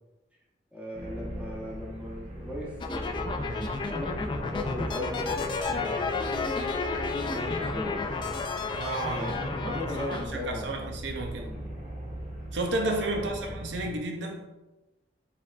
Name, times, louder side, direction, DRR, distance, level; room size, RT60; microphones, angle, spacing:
voice 1, 0.7-3.5 3.9-6.3 7.3-8.1 9.2-10.8 11.4-11.7 13.1-13.5, left 2 dB, 10° right, 0.9 m, -38 dB
sound 1, 0.9-14.0, right 1 dB, 40° right, 0.8 m, -39 dB
sound 2, 2.8-10.3, left 4 dB, 25° left, 0.3 m, -32 dB
voice 2, 8.7-11.5 12.5-14.5, right 2 dB, 85° right, 0.6 m, -32 dB
5.4 x 3.4 x 2.5 m
head